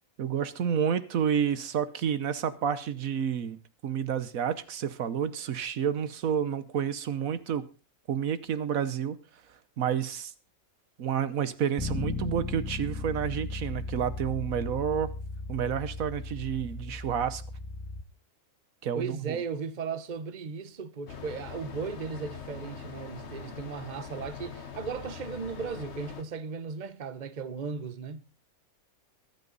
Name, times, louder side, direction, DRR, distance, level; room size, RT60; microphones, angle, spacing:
voice 1, 0.2-7.7 8.1-9.2 9.8-10.3 11.0-15.1 15.5-17.4 18.8-19.4, right 8 dB, 80° right, 1.4 m, -30 dB
Bass guitar, 11.8-18.0, left 3 dB, 15° left, 2.1 m, -36 dB
voice 2, 18.9-28.2, right 5 dB, 35° right, 1.0 m, -36 dB
sound 1, 21.1-26.2, left 6 dB, 55° left, 1.5 m, -42 dB
23.5 x 9.1 x 4.0 m
omnidirectional pair, 1.4 m